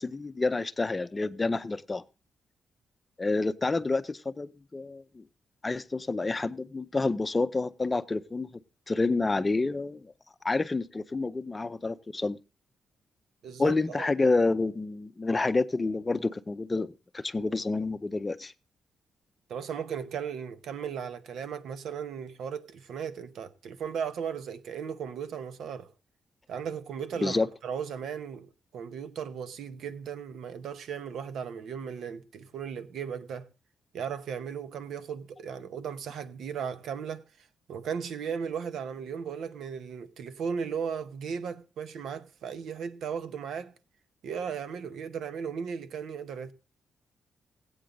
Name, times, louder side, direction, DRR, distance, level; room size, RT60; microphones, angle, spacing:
voice 1, 0.0-2.0 3.2-5.2 5.6-8.5 8.9-10.1 10.4-12.4 13.6-18.5 27.2-27.5, left 3 dB, 20° left, 0.5 m, -28 dB
voice 2, 13.4-14.1 19.5-25.9 26.5-33.5 33.9-37.3 37.7-43.7 44.2-46.5, right 7 dB, 85° right, 0.8 m, -36 dB
16.5 x 8.6 x 3.9 m
cardioid pair, 125°, 0 cm